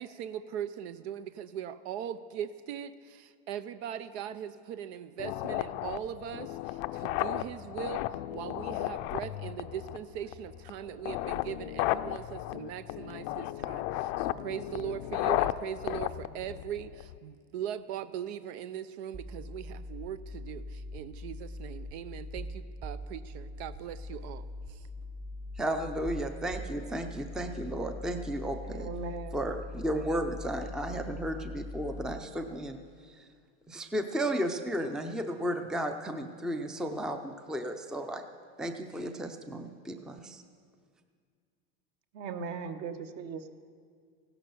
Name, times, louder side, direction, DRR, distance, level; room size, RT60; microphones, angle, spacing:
voice 1, 0.0-8.1 8.3-24.9, right 10 dB, 75° right, 13 dB, 0.7 m, -40 dB
sound 1, 5.2-17.2, left 15 dB, 60° left, 0.5 m, -34 dB
sound 2, 19.1-32.1, left 1 dB, 20° right, 1.1 m, -42 dB
voice 2, 25.6-28.9 29.3-32.8 33.1-33.3 33.7-38.2 38.6-40.4, right 1 dB, ahead, 7 dB, 0.5 m, -34 dB
voice 3, 28.6-29.5 42.1-43.5, right 5 dB, 50° right, 8 dB, 1.2 m, -39 dB
16.0 x 11.5 x 6.9 m, 2.1 s
supercardioid pair, 145°, 34 cm